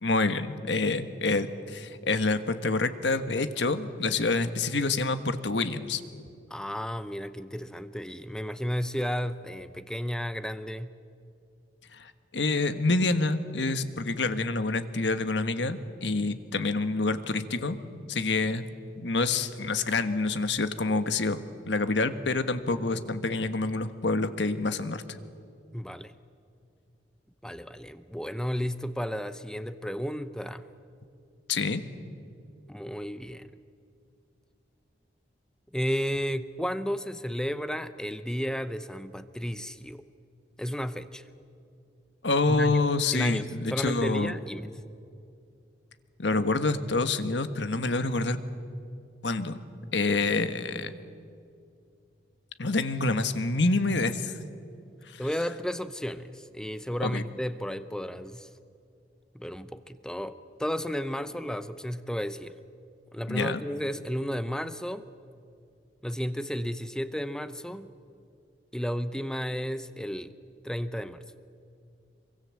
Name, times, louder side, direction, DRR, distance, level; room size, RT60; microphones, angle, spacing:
voice 1, 0.0-6.0 11.9-17.8 18.1-18.7 19.0-25.2 31.5-31.8 42.2-44.3 46.2-48.4 49.2-49.6 49.9-50.9 52.6-54.3 55.1-55.2 57.0-57.2 63.3-63.6, left 3 dB, 85° left, 10 dB, 1.4 m, -27 dB
voice 2, 6.5-10.9 25.7-26.1 27.4-30.7 32.7-33.5 35.7-40.0 40.6-41.2 42.5-42.8 43.1-44.7 55.2-58.5 59.3-62.6 63.1-65.0 66.0-67.9 68.7-70.3 70.6-71.3, equal, 5° left, 12 dB, 0.7 m, -33 dB
26.0 x 23.5 x 7.6 m, 2.4 s
head